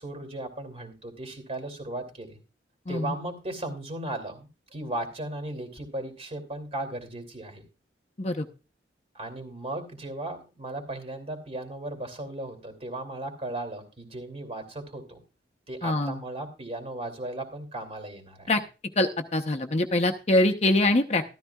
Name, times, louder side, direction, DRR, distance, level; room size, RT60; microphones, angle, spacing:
voice 1, 0.0-2.4 2.9-7.6 9.1-15.2 15.7-18.5, right 1 dB, 35° right, 6 dB, 2.9 m, -36 dB
voice 2, 15.8-16.2 18.5-18.6 19.0-21.2, left 1 dB, 35° left, 6 dB, 0.8 m, -24 dB
13.5 x 13.0 x 2.3 m, 0.32 s
head